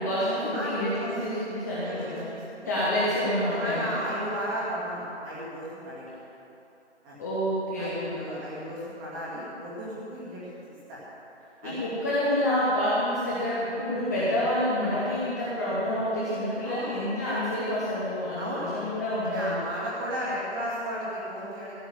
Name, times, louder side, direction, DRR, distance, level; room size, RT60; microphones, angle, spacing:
voice 1, 0.0-2.2 2.7-4.0 7.2-8.7 11.6-19.6, left 1 dB, 15° left, -9 dB, 1.4 m, -28 dB
voice 2, 0.5-1.3 1.8-2.6 3.5-6.1 7.0-7.2 7.8-10.5 10.9-11.0 11.6-11.8 16.6-17.0 18.4-18.8 19.2-21.7, equal, 10° right, -9 dB, 2.2 m, -34 dB
16.0 x 8.0 x 7.9 m, 2.9 s
figure-of-eight pair, 160°, 35 cm